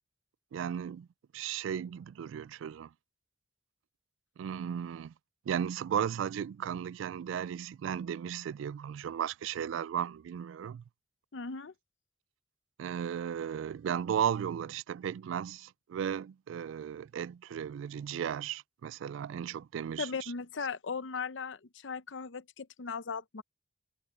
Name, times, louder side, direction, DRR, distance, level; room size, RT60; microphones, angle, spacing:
voice 1, 0.5-1.1 1.3-2.9 4.4-5.1 5.5-10.8 12.8-20.1, right 8 dB, 85° right, 0.3 m, -35 dB
voice 2, 11.3-11.7 20.0-23.4, left 5 dB, 75° left, 0.7 m, -38 dB
head